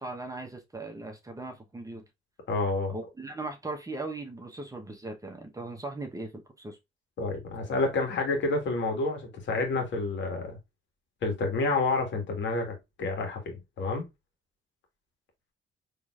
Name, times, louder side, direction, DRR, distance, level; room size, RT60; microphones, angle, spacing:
voice 1, 0.0-2.0 2.9-6.8, right 2 dB, 15° right, 1.0 m, -39 dB
voice 2, 2.5-2.9 7.2-10.6 11.2-14.0, left 3 dB, 65° left, 1.7 m, -29 dB
4.4 x 3.2 x 2.4 m
cardioid pair, 90°, 20 cm